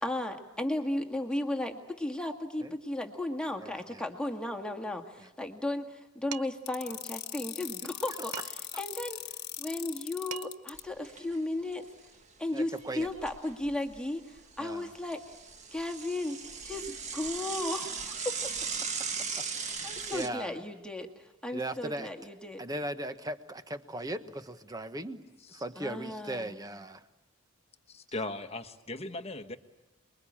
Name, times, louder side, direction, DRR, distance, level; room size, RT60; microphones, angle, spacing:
voice 1, 0.0-8.3 8.8-9.2 9.6-11.9 12.4-15.2 15.7-18.5 19.8-22.6 25.8-26.5, left 1 dB, 5° left, 3 dB, 1.9 m, -35 dB
voice 2, 3.6-4.0 5.2-5.3 12.5-13.1 14.6-14.9 19.5-20.5 21.5-22.1 22.6-25.2 25.5-27.0, right 1 dB, 15° right, 10 dB, 1.2 m, -38 dB
Dishes pots and pans, 6.3-6.7 8.3-8.8 10.0-10.1 10.3-10.8, right 9 dB, 85° right, 0.8 m, -42 dB
sound 1, 6.7-10.8, left 12 dB, 50° left, 1.6 m, -40 dB
Bicycle / Mechanisms, 10.7-11.4 11.7-11.8 12.1-12.2 12.8-14.0 14.4-20.3, right 5 dB, 35° right, 1.5 m, -38 dB
voice 3, 27.9-29.6, left 2 dB, 30° left, 8 dB, 1.3 m, -38 dB
28.5 x 22.0 x 8.8 m, 1.0 s
head